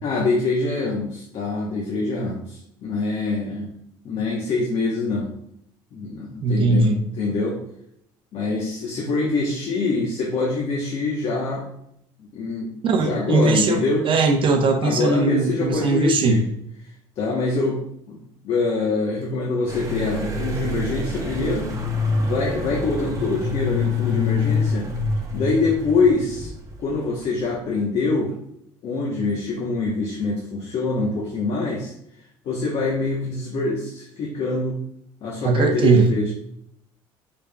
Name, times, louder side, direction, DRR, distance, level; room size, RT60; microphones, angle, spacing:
voice 1, 0.0-3.7 4.0-5.3 5.9-6.9 7.2-7.6 8.3-11.7 12.3-14.1 14.8-16.5 17.2-17.8 18.1-18.2 18.4-21.7 22.2-24.9 25.3-26.5 26.8-28.3 28.8-31.9 32.4-34.8 35.2-36.3, left 3 dB, 55° left, -2 dB, 1.0 m, -24 dB
voice 2, 6.4-7.0 12.8-16.4 35.4-36.1, right 3 dB, 45° right, 4 dB, 0.6 m, -19 dB
sound 1, 19.7-27.2, left 3 dB, 30° right, 1.0 m, -26 dB
5.0 x 3.4 x 2.3 m, 0.73 s
supercardioid pair, 85°, 12 cm